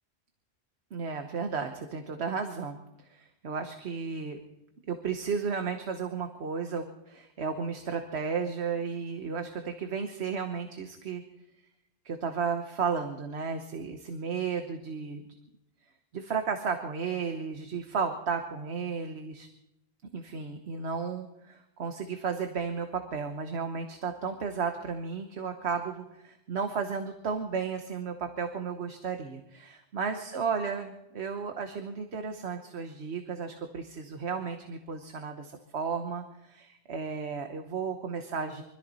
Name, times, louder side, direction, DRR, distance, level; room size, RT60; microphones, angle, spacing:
voice 1, 0.9-2.8 3.1-4.4 4.9-11.2 12.0-15.2 16.1-19.5 20.1-38.6, right 5 dB, 80° right, 6 dB, 1.4 m, -33 dB
24.5 x 13.5 x 4.1 m, 0.89 s
omnidirectional pair, 1.1 m